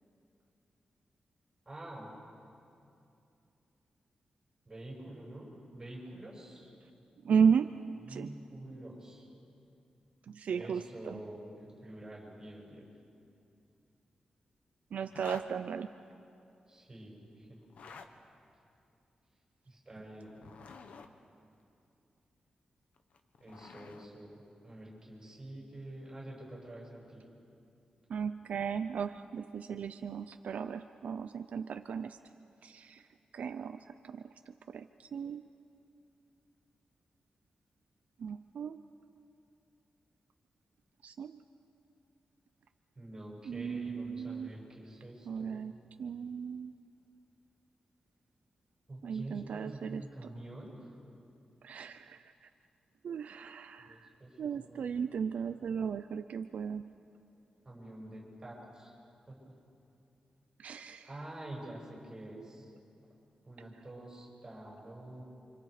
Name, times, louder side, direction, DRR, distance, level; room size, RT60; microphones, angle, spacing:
voice 1, 1.6-2.1 4.6-6.7 7.7-7.8 8.0-9.3 10.5-12.8 16.7-17.6 19.6-20.4 23.4-27.3 42.9-45.7 48.9-50.9 53.8-55.2 55.5-55.7 57.6-58.9 59.3-59.5 61.0-62.7 63.4-65.2, right 1 dB, 25° right, -3 dB, 6.8 m, -47 dB
voice 2, 7.2-7.7 8.1-8.3 10.3-11.2 14.9-15.9 28.1-32.2 32.6-33.0 33.3-33.8 34.1-34.2 34.7-34.8 35.1-35.4 38.2-38.8 41.0-41.4 43.5-44.5 45.3-45.7 46.0-46.7 49.0-50.0 51.6-52.2 53.0-54.1 54.4-56.8 60.6-61.1 62.4-62.5, right 6 dB, 70° right, 9 dB, 0.5 m, -34 dB
sound 1, 15.1-15.5 17.6-18.1 20.2-21.1 23.0-24.1, left 5 dB, 75° left, 1.3 m, -50 dB
29.5 x 26.0 x 5.0 m, 2.6 s
wide cardioid pair, 145°, 2 cm